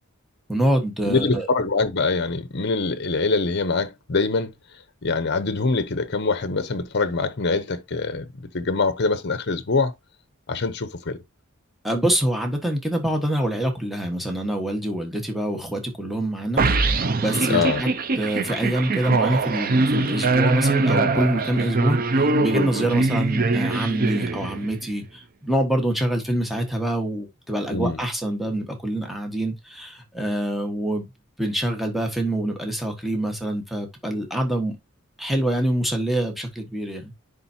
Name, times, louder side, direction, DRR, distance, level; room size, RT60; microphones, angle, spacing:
voice 1, 0.5-1.5 11.8-17.9 18.2-31.1 31.4-34.7 35.2-37.1, right 1 dB, ahead, 1.3 m, -25 dB
voice 2, 1.0-4.5 5.0-9.9 10.5-11.2 17.5-17.8 27.7-28.0, left 3 dB, 55° left, 0.8 m, -24 dB
sound 1, 16.6-24.9, right 3 dB, 45° right, 0.6 m, -22 dB
10.0 x 3.9 x 2.8 m
head